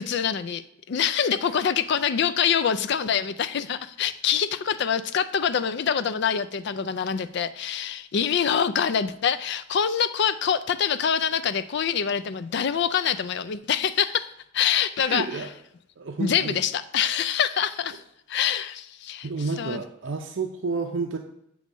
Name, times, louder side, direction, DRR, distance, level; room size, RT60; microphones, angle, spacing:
voice 1, 0.0-15.5 16.2-18.0 18.3-19.3 19.6-19.8, left 7 dB, 55° left, 13 dB, 0.4 m, -25 dB
voice 2, 15.0-15.5 16.0-16.6 19.2-21.2, right 4 dB, 60° right, 2 dB, 0.5 m, -30 dB
8.2 x 3.1 x 5.2 m, 0.79 s
head